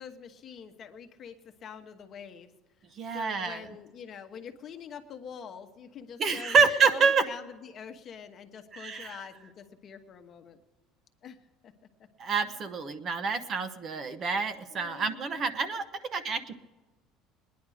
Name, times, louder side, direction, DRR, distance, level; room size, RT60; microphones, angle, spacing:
voice 1, 0.0-2.5 3.1-6.6 6.9-10.6 11.2-11.4 11.6-11.7 14.7-15.3, left 7 dB, 35° left, 6 dB, 1.1 m, -45 dB
voice 2, 3.0-3.6 6.2-7.2 8.7-9.2 12.2-15.8 16.1-16.6, right 5 dB, 35° right, 9 dB, 0.9 m, -27 dB
21.0 x 10.5 x 4.9 m, 1.2 s
cardioid pair, 155°, 0 cm